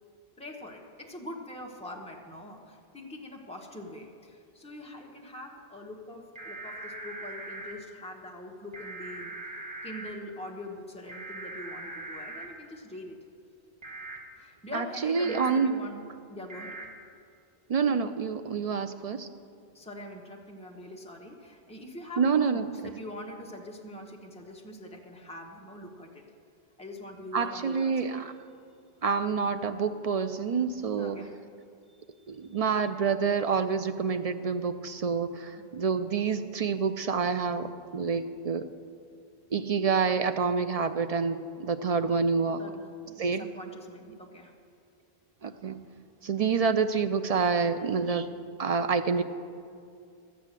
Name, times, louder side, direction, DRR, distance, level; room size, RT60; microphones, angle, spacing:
voice 1, 0.4-13.2 14.3-16.8 19.7-26.3 26.8-28.1 31.0-31.4 35.5-35.6 42.6-44.5, left 1 dB, 5° left, -1 dB, 1.1 m, -43 dB
sound 1, 6.4-7.7 8.7-10.1 11.1-12.5 13.8-14.2 15.2-15.5 16.5-16.9, right 2 dB, 25° right, 1.5 m, -41 dB
voice 2, 14.7-15.8 17.7-19.3 22.2-22.9 27.3-28.3 29.0-31.2 32.3-38.7 39.5-42.6 43.2-43.5 45.4-45.8 46.2-48.3 48.6-49.2, right 5 dB, 55° right, 10 dB, 0.4 m, -27 dB
12.5 x 8.4 x 7.4 m, 2.4 s
omnidirectional pair, 1.1 m